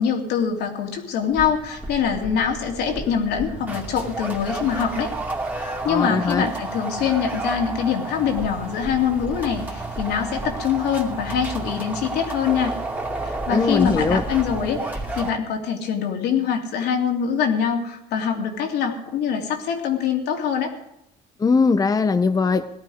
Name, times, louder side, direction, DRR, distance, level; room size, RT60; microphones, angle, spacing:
voice 1, 0.0-5.1 5.5-12.7 13.2-20.7, left 7 dB, 80° left, 2 dB, 2.7 m, -24 dB
sound 1, 1.3-15.3, right 2 dB, 10° right, 2.4 m, -31 dB
voice 2, 5.9-6.5 13.5-14.2 21.4-22.7, left 4 dB, 20° left, 10 dB, 0.7 m, -20 dB
17.5 x 12.0 x 5.0 m, 0.80 s
cardioid pair, 110°, 17 cm